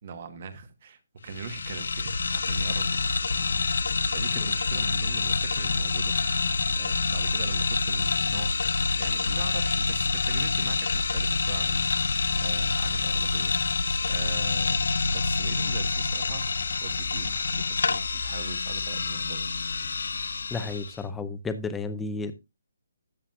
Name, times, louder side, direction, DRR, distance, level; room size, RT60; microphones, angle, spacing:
voice 1, 0.0-3.1 4.1-6.1 6.7-8.5 8.9-13.5 14.1-16.5 16.8-19.5, right 5 dB, 40° right, 1.2 m, -41 dB
sound 1, 1.3-21.0, left 4 dB, 70° left, 0.6 m, -27 dB
voice 2, 20.5-22.3, left 4 dB, 5° left, 0.5 m, -32 dB
13.0 x 7.4 x 2.4 m
hypercardioid pair, 170°, 0 cm